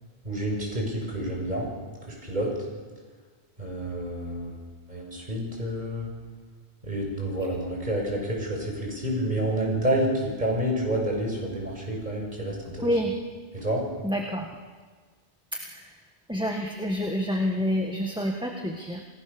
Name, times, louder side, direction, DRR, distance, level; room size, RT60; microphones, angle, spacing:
voice 1, 0.2-1.7 2.0-2.5 3.6-4.6 4.9-6.1 6.8-12.9 13.5-13.9, right 1 dB, 40° right, -1 dB, 7.0 m, -29 dB
voice 2, 12.8-13.1 14.0-14.5 15.5-15.9 16.3-19.0, equal, 5° right, 2 dB, 1.7 m, -28 dB
29.5 x 18.0 x 7.0 m, 1.5 s
omnidirectional pair, 1.1 m